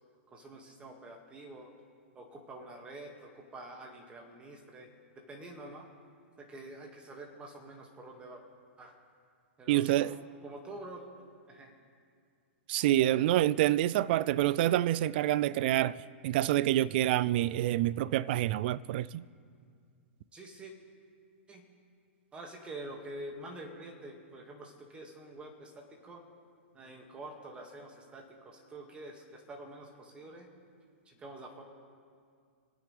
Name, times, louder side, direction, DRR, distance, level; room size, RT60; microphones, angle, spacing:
voice 1, 0.3-1.7 2.2-4.9 5.3-5.9 6.4-8.4 8.8-8.9 9.6-10.2 10.4-11.7 20.3-20.7 21.5-21.6 22.3-25.7 26.0-26.2 26.7-30.5 31.1-31.6, right 2 dB, 15° right, 2.0 m, -47 dB
voice 2, 9.7-10.1 12.7-19.2, right 14 dB, 50° right, 0.4 m, -27 dB
26.0 x 9.1 x 3.4 m
hypercardioid pair, 140°, 7 cm